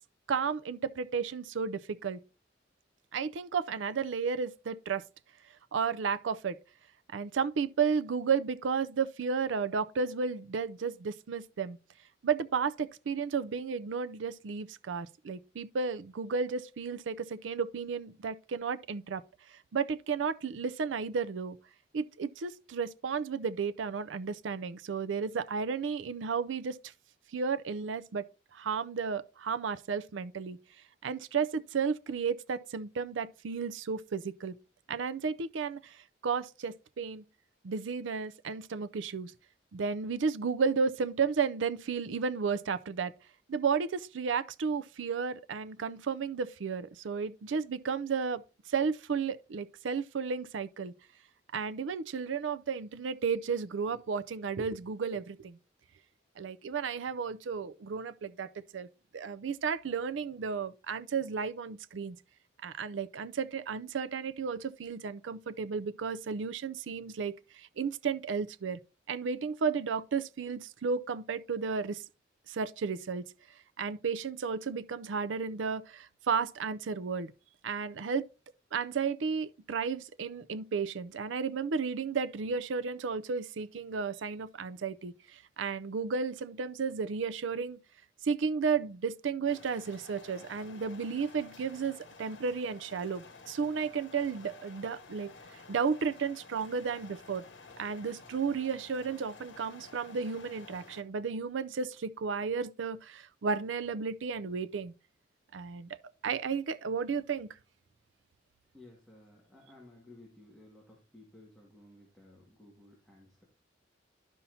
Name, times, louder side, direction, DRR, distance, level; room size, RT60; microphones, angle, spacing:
voice 1, 0.3-2.2 3.1-5.0 5.7-6.6 7.1-11.8 12.2-19.2 19.7-21.6 21.9-26.8 27.3-28.3 28.5-30.6 31.0-34.5 34.9-36.0 36.2-37.2 37.6-39.3 39.7-43.1 43.5-48.4 48.7-50.9 51.5-55.6 56.4-58.9 59.1-62.2 62.6-68.8 69.1-72.0 72.5-73.2 73.8-77.3 77.6-78.3 78.7-87.8 88.2-95.3 95.7-97.4 97.8-104.9 105.5-105.9 106.2-107.5, right 5 dB, 80° right, 0.5 m, -33 dB
sound 1, 89.5-101.0, left 4 dB, 75° left, 1.3 m, -52 dB
voice 2, 108.7-113.4, left 1 dB, ahead, 1.8 m, -56 dB
11.5 x 5.6 x 2.7 m
head